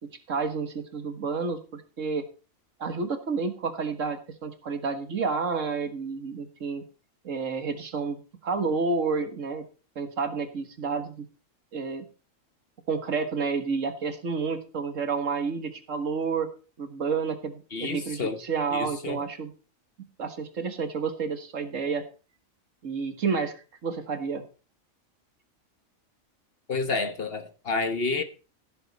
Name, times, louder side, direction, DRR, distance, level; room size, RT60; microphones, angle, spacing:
voice 1, 0.0-2.2 2.8-6.8 7.2-9.6 9.9-11.3 11.7-12.0 12.9-16.5 16.8-19.5 20.2-22.0 22.8-24.4, right 5 dB, 65° right, 1.8 m, -30 dB
voice 2, 17.7-18.4 18.7-19.2 26.7-28.2, left 4 dB, 45° left, 1.2 m, -29 dB
16.0 x 7.3 x 4.1 m
omnidirectional pair, 1.4 m